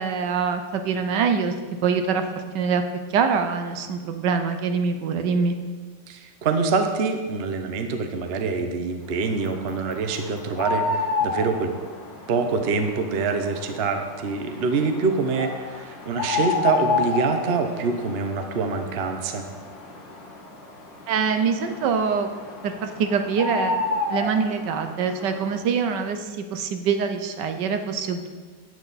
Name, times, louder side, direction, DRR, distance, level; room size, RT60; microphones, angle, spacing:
voice 1, 0.0-1.5 1.8-2.2 2.5-2.8 3.1-5.5 21.1-22.3 22.6-23.8 24.1-28.3, right 6 dB, 75° right, 7 dB, 1.4 m, -24 dB
voice 2, 6.1-11.7 12.3-19.5, right 4 dB, 45° right, 6 dB, 0.9 m, -25 dB
sound 1, 9.2-25.6, left 4 dB, 90° left, 2.1 m, -31 dB
11.0 x 9.0 x 4.1 m, 1.5 s
omnidirectional pair, 1.9 m